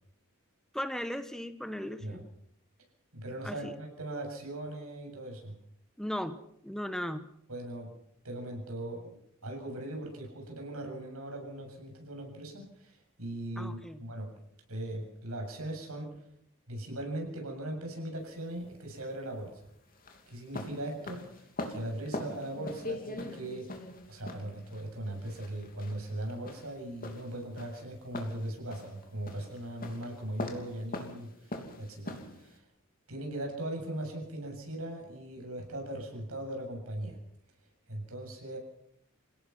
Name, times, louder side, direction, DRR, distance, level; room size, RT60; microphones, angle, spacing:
voice 1, 0.7-2.3 3.4-3.7 6.0-6.4 6.6-7.2 13.6-14.0, equal, ahead, 10 dB, 1.1 m, -36 dB
voice 2, 3.1-5.5 7.5-7.9 8.2-9.2 9.4-14.3 14.7-16.2 16.7-19.7 20.3-23.7 24.1-32.6 33.1-37.2 37.9-38.6, right 1 dB, 90° right, 2 dB, 7.7 m, -39 dB
sound 1, 18.2-32.6, left 1 dB, 45° left, 3.0 m, -42 dB
28.0 x 17.0 x 6.0 m, 0.73 s
head